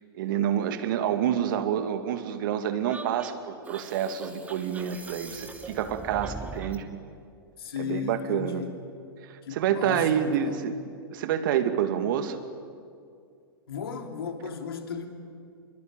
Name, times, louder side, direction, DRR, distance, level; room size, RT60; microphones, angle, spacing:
voice 1, 0.2-6.9 7.8-8.6 9.5-10.7 11.1-12.4, right 9 dB, 55° right, 9 dB, 2.3 m, -28 dB
sound 1, 2.9-6.9, right 4 dB, 10° right, 2.4 m, -41 dB
voice 2, 7.6-8.8 9.4-10.7 13.7-15.1, left 6 dB, 70° left, 5 dB, 3.2 m, -35 dB
27.0 x 23.0 x 9.1 m, 2.3 s
figure-of-eight pair, 105°, 13 cm